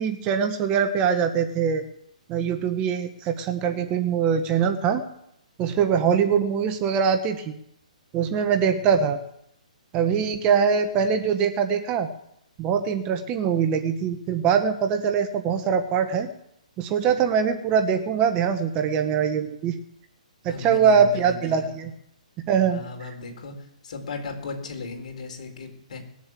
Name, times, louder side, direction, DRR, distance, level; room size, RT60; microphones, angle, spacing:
voice 1, 0.0-1.8 2.3-5.0 5.6-7.5 8.1-9.2 9.9-12.1 12.6-16.3 16.8-19.7 20.4-21.9 22.5-22.8, right 7 dB, 25° right, 8 dB, 1.1 m, -23 dB
voice 2, 20.4-21.9 22.6-26.0, left 3 dB, 60° left, 3 dB, 4.4 m, -37 dB
20.0 x 7.4 x 7.6 m, 0.78 s
hypercardioid pair, 150°, 4 cm